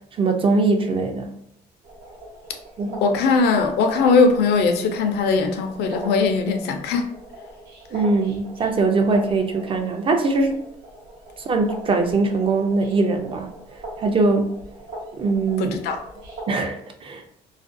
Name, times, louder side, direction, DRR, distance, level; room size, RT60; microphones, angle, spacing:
voice 1, 0.2-1.3 2.8-3.0 7.9-10.6 11.5-13.5 14.0-14.6 15.2-15.8 16.5-17.2, right 3 dB, 30° right, 4 dB, 0.4 m, -21 dB
Pond Life, 1.8-16.4, right 1 dB, 80° right, 0.9 m, -40 dB
voice 2, 3.0-7.1 15.6-16.0, left 4 dB, 75° left, 5 dB, 0.5 m, -20 dB
2.4 x 2.2 x 2.5 m, 0.70 s
cardioid pair, 110°, 17 cm